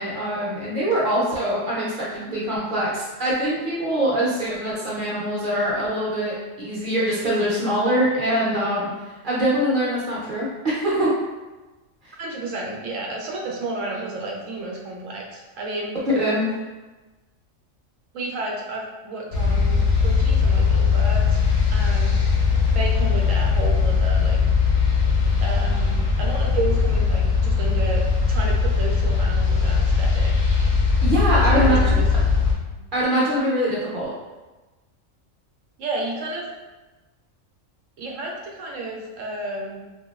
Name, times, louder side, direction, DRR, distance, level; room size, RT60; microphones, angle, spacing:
voice 1, 0.0-8.9 9.2-11.1 16.1-16.4 31.0-31.8 32.9-34.1, right 1 dB, 45° right, -7 dB, 0.9 m, -23 dB
voice 2, 12.2-16.0 18.1-21.4 21.7-22.3 22.7-24.4 25.4-28.0 28.3-30.3 31.5-32.2 35.8-36.5 38.0-39.8, right 2 dB, 75° right, -1 dB, 1.0 m, -31 dB
sound 1, 19.3-32.5, left 5 dB, 50° left, 0.5 m, -20 dB
2.9 x 2.6 x 2.4 m, 1.2 s
omnidirectional pair, 1.3 m